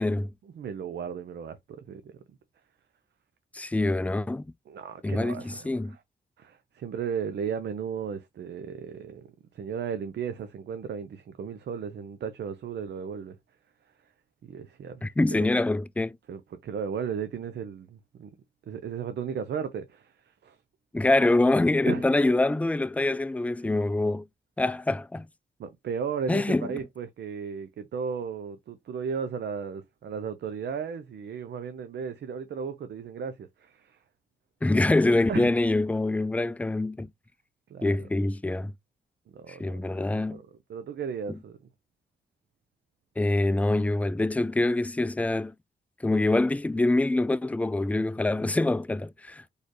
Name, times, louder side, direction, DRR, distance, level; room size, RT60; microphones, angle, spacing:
voice 1, 0.4-1.6 1.9-2.1 4.7-6.0 6.4-13.4 14.5-15.1 15.4-15.5 16.3-18.3 18.7-20.6 21.9-22.1 25.6-34.0 35.3-35.5 37.7-38.1 39.3-40.0 40.3-40.4 40.7-41.6, right 7 dB, 80° right, 0.6 m, -35 dB
voice 2, 3.5-4.5 5.0-6.0 15.0-16.2 20.9-24.3 24.6-25.3 26.3-26.7 34.6-37.1 37.8-38.7 39.5-40.4 43.2-45.5 46.0-49.5, left 2 dB, 10° left, 0.3 m, -25 dB
4.3 x 3.3 x 3.0 m
cardioid pair, 65°, 17 cm